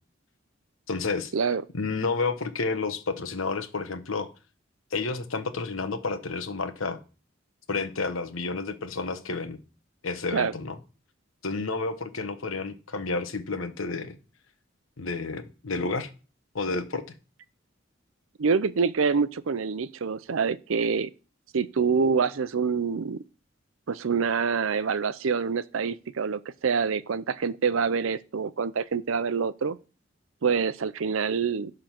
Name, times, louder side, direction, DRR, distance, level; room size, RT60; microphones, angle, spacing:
voice 1, 0.9-1.3 1.7-4.3 4.9-7.0 7.7-9.6 10.0-10.7 11.4-14.1 15.0-16.1 16.5-17.0, left 3 dB, 85° left, 1.1 m, -30 dB
voice 2, 18.4-21.1 21.5-23.2 23.9-29.8 30.4-31.7, right 5 dB, 85° right, 0.5 m, -26 dB
11.5 x 3.8 x 5.9 m
head